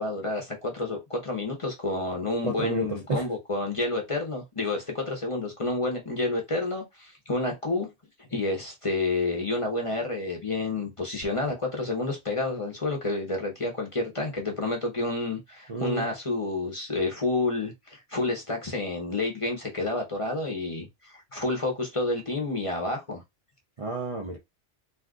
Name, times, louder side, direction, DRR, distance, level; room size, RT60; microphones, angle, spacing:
voice 1, 0.0-7.9 8.3-23.2, left 2 dB, 30° left, 0.7 m, -29 dB
voice 2, 2.4-3.2 15.7-16.1 23.8-24.4, right 2 dB, 40° right, 0.5 m, -30 dB
2.6 x 2.4 x 3.6 m
omnidirectional pair, 1.2 m